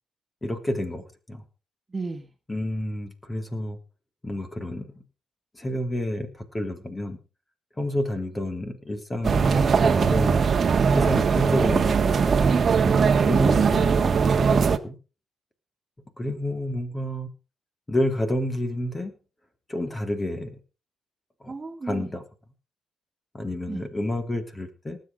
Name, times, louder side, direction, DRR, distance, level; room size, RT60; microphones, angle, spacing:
voice 1, 0.4-1.4 2.5-3.8 4.2-5.0 5.5-7.2 7.8-10.4 10.9-12.4 13.3-15.0 16.2-17.3 17.9-19.1 19.7-20.6 21.4-21.5 21.9-22.2 23.3-25.0, left 1 dB, 20° left, 7 dB, 3.3 m, -30 dB
voice 2, 1.9-2.3 12.8-13.6 21.5-22.1 23.7-23.9, right 3 dB, 25° right, 5 dB, 2.3 m, -32 dB
sound 1, 9.2-14.8, right 5 dB, 45° right, 1.5 m, -20 dB
19.0 x 8.4 x 5.2 m, 0.33 s
cardioid pair, 90°, 0 cm